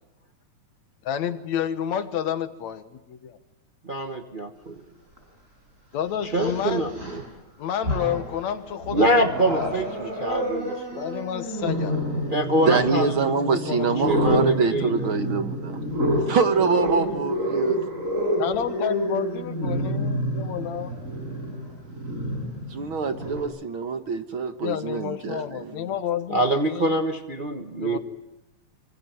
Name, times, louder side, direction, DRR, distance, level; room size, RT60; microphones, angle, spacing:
voice 1, 1.0-3.4 5.9-6.9 7.6-9.7 10.1-10.3 10.9-11.9 13.0-14.1 18.4-21.0 24.6-27.0 27.8-28.0, left 9 dB, 70° left, 11 dB, 2.6 m, -30 dB
voice 2, 3.8-4.8 6.3-7.2 8.9-11.0 12.3-13.1 13.5-13.6 14.1-15.1 26.3-28.0, right 1 dB, 70° right, 6 dB, 0.4 m, -25 dB
Growling, 5.2-5.3 6.2-7.3 7.7-8.4 8.8-23.4, equal, 25° right, 6.5 m, -28 dB
voice 3, 12.7-15.8 16.3-17.8 22.7-25.9, right 5 dB, 50° right, 9 dB, 1.8 m, -25 dB
25.5 x 24.0 x 9.3 m, 0.88 s
omnidirectional pair, 3.4 m